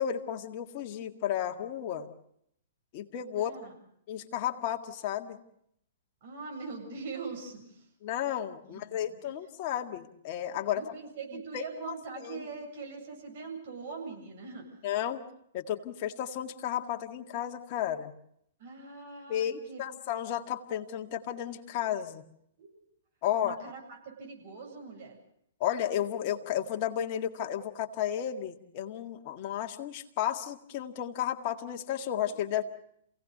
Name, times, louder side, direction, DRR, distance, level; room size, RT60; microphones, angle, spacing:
voice 1, 0.0-2.1 2.9-3.5 4.1-5.4 8.0-10.8 11.3-12.5 14.8-15.2 15.5-18.1 19.3-22.2 23.2-23.6 25.6-32.6, left 10 dB, 45° left, 5 dB, 1.9 m, -33 dB
voice 2, 3.4-3.7 6.2-7.8 8.7-9.2 10.7-14.8 18.6-19.8 22.6-22.8 23.2-25.2 32.3-32.4, right 4 dB, 60° right, 2 dB, 7.9 m, -42 dB
27.5 x 17.5 x 6.8 m, 0.72 s
hypercardioid pair, 120°, 0 cm